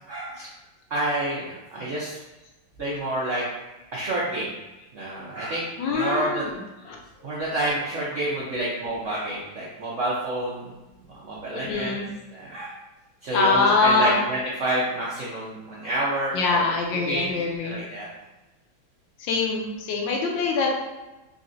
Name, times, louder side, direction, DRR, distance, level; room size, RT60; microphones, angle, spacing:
voice 1, 0.1-0.5 0.9-2.2 2.8-3.5 3.9-4.5 4.9-6.4 7.2-10.7 11.1-12.0 12.3-12.8 13.2-16.7 17.1-17.3 17.6-18.1, right 1 dB, 70° right, -6 dB, 0.7 m, -28 dB
voice 2, 5.8-6.6 6.8-7.0 11.5-12.1 13.3-14.2 16.3-17.8 19.2-20.8, left 3 dB, 75° left, 0 dB, 1.3 m, -23 dB
3.8 x 3.1 x 2.6 m, 1.1 s
omnidirectional pair, 2.1 m